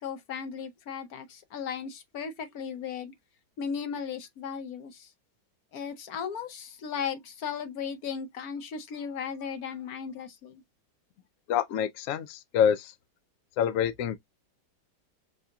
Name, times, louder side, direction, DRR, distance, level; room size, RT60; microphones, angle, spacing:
voice 1, 0.0-3.1 3.6-5.1 5.7-10.6, left 7 dB, 60° left, 1.2 m, -36 dB
voice 2, 11.5-12.9 13.6-14.2, left 8 dB, 80° left, 0.7 m, -26 dB
6.2 x 2.8 x 2.2 m
omnidirectional pair, 1.9 m